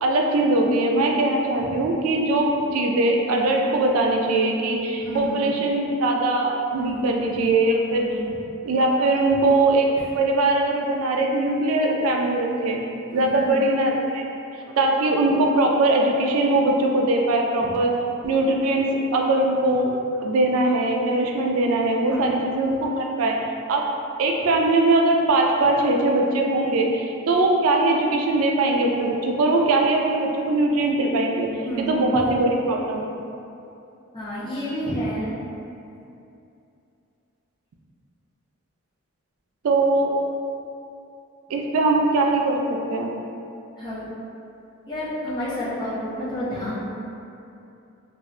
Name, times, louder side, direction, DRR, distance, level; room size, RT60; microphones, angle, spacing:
voice 1, 0.0-8.0 8.6-9.9 10.1-14.2 14.8-17.9 18.2-19.9 20.2-23.8 24.2-31.5 31.8-33.2 39.6-40.1 41.5-43.1, right 2 dB, 85° right, 1 dB, 0.3 m, -21 dB
voice 2, 1.4-1.9 3.7-3.9 5.0-5.5 6.7-7.2 7.9-8.3 13.1-13.6 17.6-17.7 22.1-22.3 31.6-32.0 34.1-35.3 43.8-44.1 44.9-46.8, equal, 20° left, -10 dB, 0.7 m, -30 dB
2.6 x 2.4 x 3.1 m, 2.7 s
head